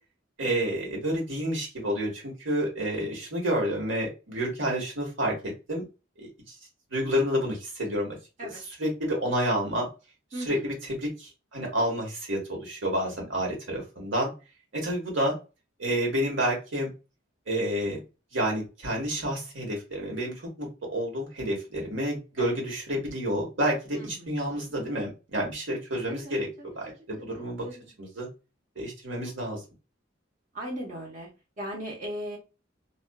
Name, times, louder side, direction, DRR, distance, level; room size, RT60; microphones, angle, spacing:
voice 1, 0.4-5.8 6.2-6.5 6.9-8.2 8.4-8.5 8.8-9.9 10.4-14.3 14.7-15.3 15.8-16.9 17.5-18.0 18.3-26.5 26.7-27.7 28.0-28.3 28.8-29.6, equal, 70° right, -1 dB, 1.3 m, -29 dB
voice 2, 10.3-10.7 22.4-22.5 23.9-24.6 25.9-26.4 26.9-27.8 30.5-31.3 31.6-32.4, equal, 40° right, -2 dB, 0.9 m, -38 dB
2.5 x 2.3 x 2.2 m, 0.29 s
head